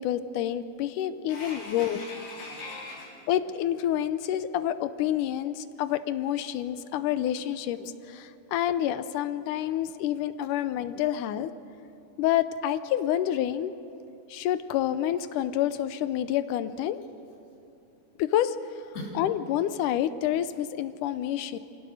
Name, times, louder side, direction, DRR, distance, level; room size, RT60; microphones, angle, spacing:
voice 1, 0.0-2.0 3.3-11.5 12.2-13.7 14.3-17.0 18.2-18.6 19.2-21.6, left 11 dB, 85° left, 12 dB, 2.2 m, -28 dB
voice 2, 1.3-3.2 18.9-19.1, left 2 dB, 45° left, -7 dB, 5.0 m, -40 dB
27.5 x 17.0 x 6.5 m, 2.9 s
omnidirectional pair, 3.7 m